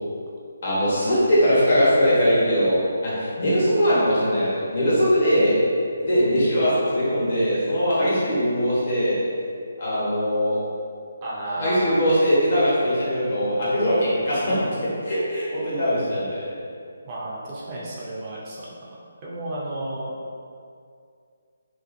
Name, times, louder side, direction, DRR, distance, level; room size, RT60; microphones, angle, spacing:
voice 1, 0.6-5.6 6.0-9.2 9.8-10.6 11.6-16.5, equal, 50° left, -9 dB, 1.1 m, -21 dB
voice 2, 11.2-12.1 17.0-18.6 19.2-20.1, right 1 dB, 25° right, -7 dB, 0.4 m, -32 dB
2.5 x 2.4 x 2.5 m, 2.3 s
hypercardioid pair, 165°, 0 cm